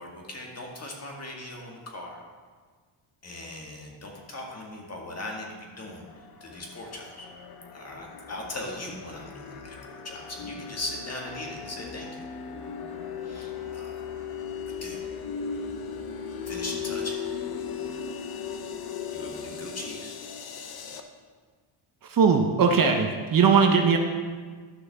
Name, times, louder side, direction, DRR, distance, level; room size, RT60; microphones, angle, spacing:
voice 1, 0.0-2.2 3.2-6.0 6.4-7.3 7.7-12.2 13.2-14.0 14.8-15.0 16.5-17.3 19.1-20.1, left 1 dB, 30° left, -1 dB, 2.0 m, -39 dB
sound 1, 6.1-21.0, left 6 dB, 50° left, 0.8 m, -37 dB
voice 2, 22.1-24.0, right 5 dB, 45° right, 4 dB, 0.9 m, -20 dB
11.5 x 6.2 x 3.6 m, 1.5 s
cardioid pair, 90°, 49 cm